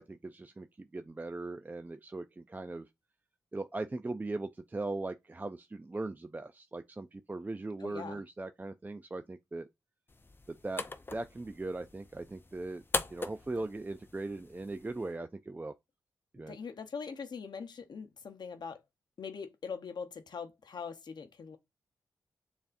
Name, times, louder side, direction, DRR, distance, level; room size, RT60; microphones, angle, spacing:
voice 1, 0.0-2.9 3.5-9.7 10.5-10.8 11.1-12.8 13.1-15.7 16.3-16.6, right 2 dB, 20° right, 0.4 m, -39 dB
voice 2, 7.8-8.2 13.6-13.7 16.5-18.8 19.2-21.6, left 5 dB, 60° left, 0.9 m, -42 dB
sound 1, 10.1-15.1, left 3 dB, 25° left, 0.6 m, -41 dB
6.9 x 2.7 x 2.6 m
supercardioid pair, 45°, 8 cm